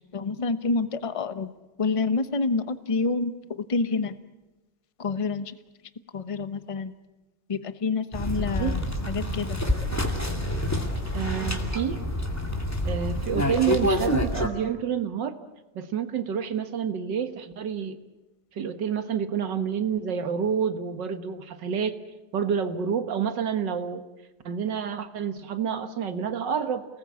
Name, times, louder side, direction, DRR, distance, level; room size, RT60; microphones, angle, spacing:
voice 1, 0.0-1.5 1.8-3.3 3.7-4.1 5.0-5.5 6.1-6.9 7.5-9.6, left 4 dB, 25° left, 11 dB, 0.8 m, -28 dB
sound 1, 8.1-14.5, left 1 dB, 10° left, 2.3 m, -27 dB
voice 2, 8.4-8.8 11.1-12.0 12.8-15.4 15.8-18.0 18.5-22.0 22.3-24.0 24.5-26.9, right 7 dB, 85° right, 9 dB, 2.1 m, -28 dB
29.5 x 19.5 x 8.5 m, 1.1 s
omnidirectional pair, 1.9 m